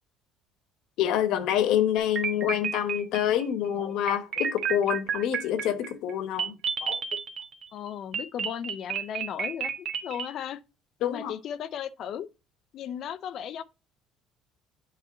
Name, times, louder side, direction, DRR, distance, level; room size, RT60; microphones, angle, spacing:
voice 1, 1.0-7.0 11.0-11.3, left 10 dB, 70° left, 1.0 m, -27 dB
sound 1, 2.0-3.4 4.1-7.7 8.1-10.3, right 6 dB, 45° right, 1.1 m, -31 dB
voice 2, 7.7-10.6 11.0-12.3 12.7-13.6, left 9 dB, 50° left, 0.5 m, -36 dB
8.5 x 4.0 x 3.9 m
cardioid pair, 130°, 0 cm